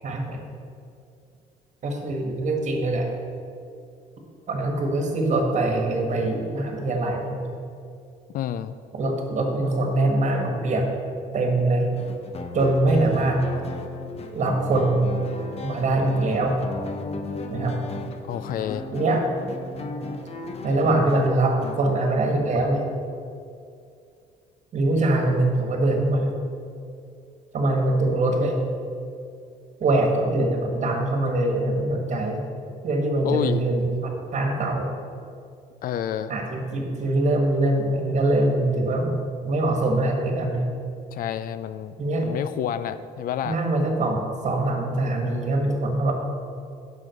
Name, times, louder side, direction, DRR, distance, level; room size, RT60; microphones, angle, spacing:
voice 1, 0.0-0.4 1.8-3.1 4.5-7.5 8.9-10.8 11.3-11.9 12.5-13.4 14.3-15.2 15.6-16.6 17.5-17.8 18.9-19.2 20.6-22.9 24.7-26.3 27.5-28.6 29.8-32.4 32.8-34.9 36.3-39.1 39.4-40.7 42.0-42.3 43.4-46.1, right 2 dB, 45° right, 2 dB, 1.6 m, -23 dB
voice 2, 8.3-8.7 18.3-18.9 33.2-33.6 35.8-36.3 41.1-42.0 42.2-43.6, left 10 dB, 55° left, 13 dB, 0.4 m, -28 dB
sound 1, 11.9-21.8, left 3 dB, 40° left, 0.8 m, -35 dB
7.6 x 5.7 x 6.4 m, 2.4 s
cardioid pair, 110°, 17 cm